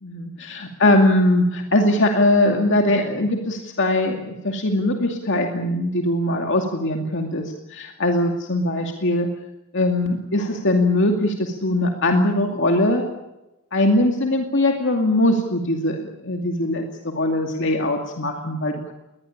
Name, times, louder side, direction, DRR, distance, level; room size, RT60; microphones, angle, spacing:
voice 1, 0.0-7.4 7.7-9.3 9.7-13.1 13.7-18.9, left 1 dB, 60° left, 3 dB, 2.4 m, -21 dB
21.5 x 20.0 x 8.6 m, 0.94 s
head